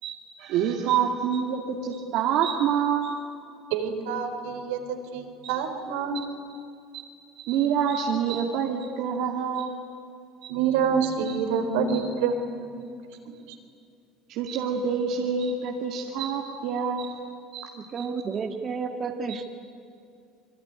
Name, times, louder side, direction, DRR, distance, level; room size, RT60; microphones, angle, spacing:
voice 1, 0.0-3.2 6.1-6.3 6.9-7.0 7.4-9.8 10.4-10.5 11.2-11.3 11.9-12.0 14.3-17.2 17.5-18.1 19.3-19.4, right 7 dB, 65° right, 0 dB, 2.4 m, -27 dB
voice 2, 3.7-6.2 10.5-12.9, right 6 dB, 85° right, 5 dB, 4.0 m, -27 dB
voice 3, 17.9-19.5, right 5 dB, 35° right, 3 dB, 1.8 m, -31 dB
27.0 x 22.5 x 9.8 m, 2.4 s
supercardioid pair, 105°, 0 cm